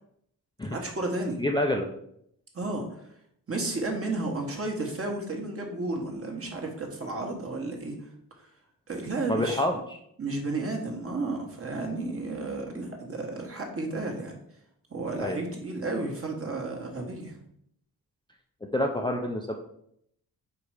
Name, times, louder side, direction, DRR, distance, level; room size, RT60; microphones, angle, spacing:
voice 1, 0.7-1.4 2.5-3.1 3.5-8.1 8.9-9.6 10.2-14.4 14.9-17.4, right 2 dB, 35° right, 1 dB, 1.4 m, -32 dB
voice 2, 1.4-1.9 9.3-9.8 15.2-15.4 18.7-19.5, left 1 dB, 15° left, 1 dB, 0.5 m, -27 dB
4.8 x 4.3 x 5.0 m, 0.72 s
cardioid pair, 105°, 37 cm